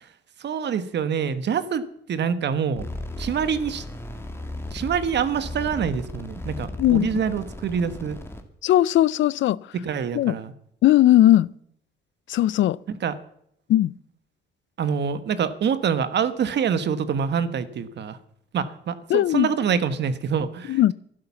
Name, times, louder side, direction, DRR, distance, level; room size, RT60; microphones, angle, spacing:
voice 1, 0.4-1.8 2.1-2.9 3.2-3.8 4.7-8.2 9.7-10.5 12.9-13.1 14.8-18.2 18.5-20.8, right 7 dB, 60° right, 1.4 m, -26 dB
sound 1, 2.7-8.4, left 1 dB, 10° left, 2.2 m, -36 dB
voice 2, 6.8-7.1 8.6-9.6 10.2-10.3 10.8-11.5 12.3-12.8 13.7-13.9 19.1-19.5 20.7-20.9, left 13 dB, 70° left, 0.5 m, -18 dB
11.5 x 11.5 x 7.2 m
cardioid pair, 90°, 20 cm